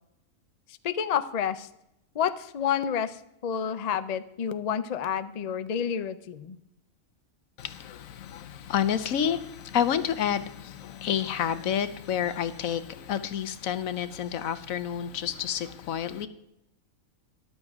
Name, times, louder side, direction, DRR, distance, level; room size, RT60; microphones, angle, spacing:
voice 1, 0.8-1.7 2.1-6.6, left 8 dB, 55° left, 0.4 m, -29 dB
voice 2, 7.6-16.3, left 9 dB, 75° left, 1.2 m, -29 dB
13.5 x 11.0 x 3.6 m
omnidirectional pair, 1.4 m